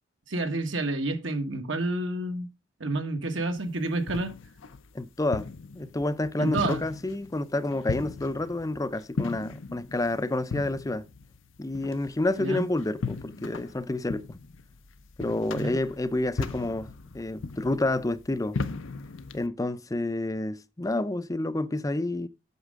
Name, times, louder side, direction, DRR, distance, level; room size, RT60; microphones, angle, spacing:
voice 1, 0.3-2.5 2.8-4.3 6.4-6.8 12.4-12.6 15.5-15.7, right 2 dB, 70° right, 1.6 m, -29 dB
sound 1, 3.6-19.5, left 4 dB, 80° left, 0.7 m, -38 dB
voice 2, 4.9-5.5 5.7-11.0 11.6-14.4 15.2-18.6 19.3-22.3, left 2 dB, 15° left, 0.5 m, -29 dB
8.2 x 6.4 x 3.6 m
head